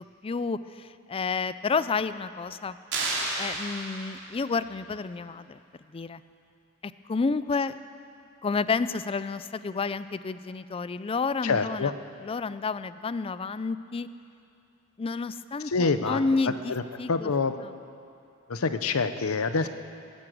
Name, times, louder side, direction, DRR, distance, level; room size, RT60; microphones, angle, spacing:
voice 1, 0.2-2.8 3.4-5.6 5.9-6.2 6.8-7.8 8.4-11.9 12.2-14.1 15.0-16.7 17.0-17.3, left 4 dB, 25° left, 14 dB, 0.4 m, -30 dB
sound 1, 2.9-4.4, right 2 dB, 55° right, 3.5 m, -31 dB
voice 2, 11.4-11.9 15.6-16.8 17.1-17.6 18.5-19.7, left 4 dB, 75° left, 10 dB, 0.7 m, -26 dB
18.5 x 9.8 x 7.7 m, 2.5 s
head